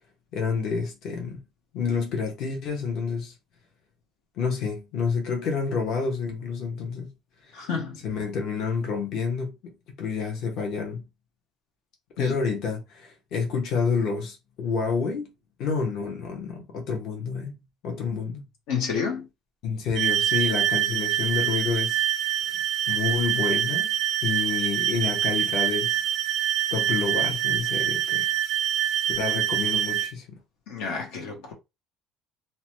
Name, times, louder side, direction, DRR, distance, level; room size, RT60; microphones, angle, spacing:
voice 1, 0.3-1.4 1.7-3.3 4.4-7.1 7.5-7.6 8.0-11.0 12.2-15.3 15.6-17.5 17.8-18.4 19.6-22.1 22.9-23.9 24.2-26.0 26.7-28.3 29.2-30.4, left 5 dB, 60° left, 0.9 m, -29 dB
voice 2, 7.5-8.0 12.2-12.3 18.7-19.3 30.7-31.5, left 6 dB, 85° left, 1.0 m, -30 dB
sound 1, 20.0-30.1, right 11 dB, 60° right, 0.3 m, -25 dB
2.7 x 2.2 x 3.0 m
cardioid pair, 135°, 0 cm